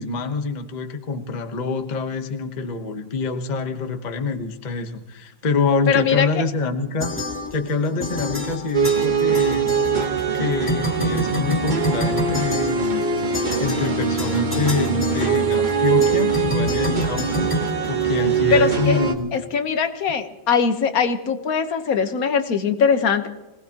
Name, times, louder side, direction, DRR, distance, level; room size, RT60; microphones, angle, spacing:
voice 1, 0.0-7.2 7.5-9.7 10.3-13.1 13.6-17.5 17.8-19.3, left 4 dB, 30° left, 6 dB, 1.0 m, -26 dB
voice 2, 5.9-6.3 18.5-19.0 19.3-23.3, left 6 dB, 55° left, 8 dB, 1.5 m, -21 dB
sound 1, 7.0-7.7 8.0-10.4 10.7-18.5, left 1 dB, 5° left, 2.6 m, -28 dB
sound 2, 8.7-19.1, right 6 dB, 30° right, 1.0 m, -22 dB
25.5 x 18.5 x 2.9 m, 1.1 s
omnidirectional pair, 2.0 m